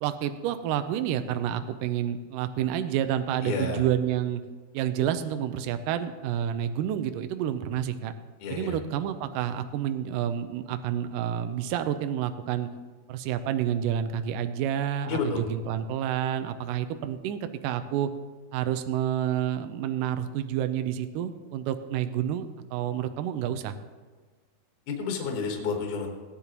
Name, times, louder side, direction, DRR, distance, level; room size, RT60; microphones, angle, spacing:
voice 1, 0.0-4.4 4.7-8.1 8.5-12.7 13.1-18.1 18.5-23.8, right 10 dB, 80° right, 9 dB, 1.9 m, -29 dB
voice 2, 3.4-3.8 8.4-8.7 15.1-15.4 24.9-26.1, left 5 dB, 60° left, 1 dB, 2.6 m, -30 dB
17.5 x 10.0 x 3.0 m, 1.4 s
omnidirectional pair, 4.4 m